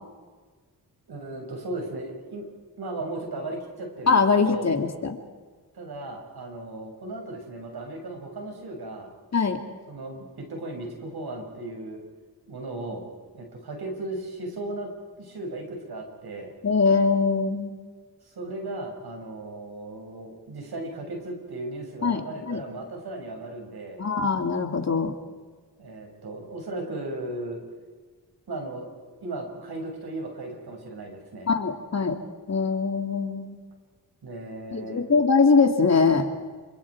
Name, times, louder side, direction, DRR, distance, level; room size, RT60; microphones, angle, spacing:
voice 1, 1.1-2.4 2.8-4.8 5.7-9.1 9.9-12.0 12.4-13.0 13.3-14.9 15.2-16.5 18.3-24.0 25.8-27.6 28.5-31.5 34.2-35.0, right 2 dB, 70° right, 2 dB, 6.6 m, -36 dB
voice 2, 4.1-5.2 9.3-9.6 16.6-17.7 22.0-22.2 22.5-22.6 24.0-25.1 31.5-32.2 32.5-33.6 34.7-36.3, left 4 dB, 40° left, 5 dB, 2.8 m, -22 dB
28.0 x 26.0 x 4.9 m, 1.4 s
cardioid pair, 75°, 40 cm